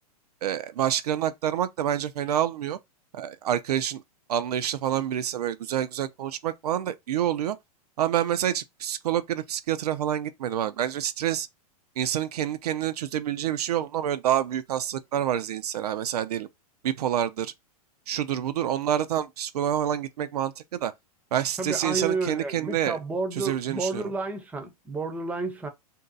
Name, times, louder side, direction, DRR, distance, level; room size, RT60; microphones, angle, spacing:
voice 1, 0.4-2.8 3.1-4.0 4.3-7.6 8.0-11.5 12.0-16.5 16.8-17.5 18.1-20.9 21.3-23.0 23.3-24.1, right 10 dB, 80° right, 0.5 m, -27 dB
voice 2, 21.6-25.7, right 3 dB, 5° right, 0.5 m, -31 dB
2.7 x 2.2 x 3.8 m
hypercardioid pair, 125°, 20 cm